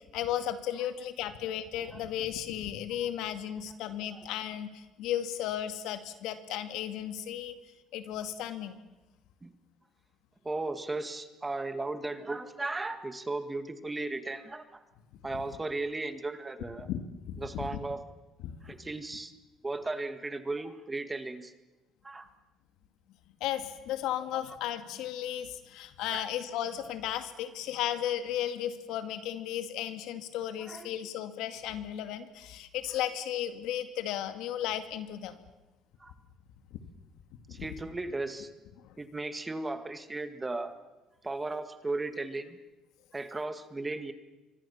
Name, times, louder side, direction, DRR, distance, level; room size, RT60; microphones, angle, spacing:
voice 1, 0.1-7.6 7.9-8.8 16.8-17.7 18.4-18.5 23.4-35.4 36.7-36.8 37.5-37.7 38.8-39.0, left 11 dB, 75° left, 9 dB, 2.2 m, -35 dB
voice 2, 10.4-14.8 15.2-16.9 17.4-18.0 18.6-19.3 19.6-21.5 22.0-22.3 24.3-24.4 26.1-26.3 30.6-30.9 33.0-33.1 36.0-36.1 37.5-38.5 39.0-40.7 41.2-42.6 43.1-44.1, right 2 dB, 15° right, 9 dB, 1.9 m, -36 dB
26.5 x 24.0 x 7.2 m, 1.1 s
cardioid pair, 120°, 0 cm